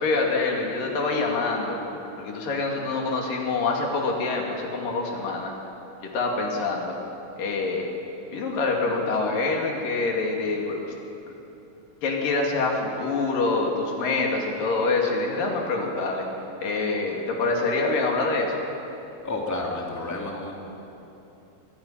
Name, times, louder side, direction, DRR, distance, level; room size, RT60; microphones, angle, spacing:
voice 1, 0.0-1.8 2.2-5.5 6.1-6.9 7.4-7.9 8.3-10.8 12.0-16.2 16.6-18.6, left 3 dB, 90° left, 0 dB, 4.2 m, -25 dB
voice 2, 19.2-20.5, left 2 dB, 5° left, -2 dB, 2.3 m, -30 dB
23.5 x 20.5 x 5.7 m, 3.0 s
omnidirectional pair, 3.8 m